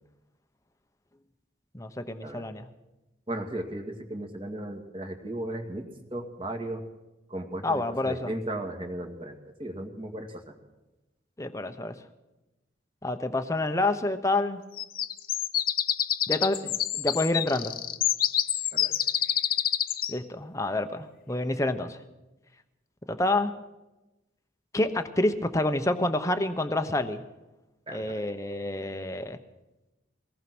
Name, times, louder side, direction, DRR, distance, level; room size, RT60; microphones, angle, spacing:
voice 1, 1.7-2.7 7.6-8.3 11.4-12.0 13.0-14.6 16.3-17.7 20.1-22.0 23.1-23.5 24.7-27.2 27.9-29.4, left 2 dB, 15° left, 8 dB, 1.0 m, -28 dB
voice 2, 3.3-5.9 6.1-6.8 7.3-10.5 18.7-19.0 27.9-28.2, right 1 dB, 25° right, 4 dB, 2.2 m, -36 dB
sound 1, 14.8-20.2, left 11 dB, 50° left, 0.7 m, -27 dB
23.5 x 18.5 x 6.2 m, 1.0 s
head